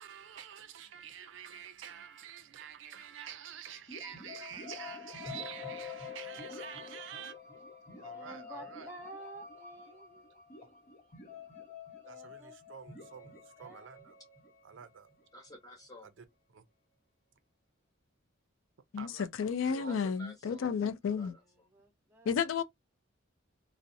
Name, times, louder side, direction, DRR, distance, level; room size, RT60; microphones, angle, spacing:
voice 1, 0.0-7.3 8.0-8.9 10.6-10.7 12.1-14.2 14.6-15.1 16.2-16.3 16.5-16.7 19.0-19.3 19.8-20.0, right 8 dB, 65° right, 0.4 m, -48 dB
sound 1, 3.9-15.6, left 5 dB, 45° left, 1.0 m, -48 dB
voice 2, 8.1-10.3 12.0-12.6 13.6-13.9 21.7-22.4, right 2 dB, 10° right, 0.7 m, -50 dB
voice 3, 15.3-16.1 19.7-20.7 21.0-21.7, left 1 dB, 20° left, 0.9 m, -51 dB
voice 4, 19.4-21.3 22.2-22.6, left 6 dB, 75° left, 0.3 m, -32 dB
2.5 x 2.0 x 2.5 m
head